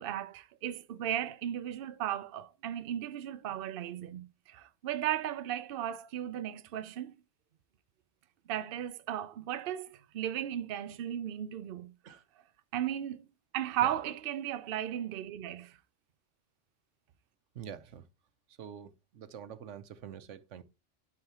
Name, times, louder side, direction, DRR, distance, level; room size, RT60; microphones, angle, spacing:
voice 1, 0.0-7.2 8.5-11.9 12.7-13.3 13.5-15.8, right 11 dB, 60° right, 0.7 m, -36 dB
voice 2, 17.5-18.1 18.5-20.6, right 8 dB, 90° right, 1.1 m, -46 dB
11.5 x 4.9 x 2.9 m
omnidirectional pair, 1.2 m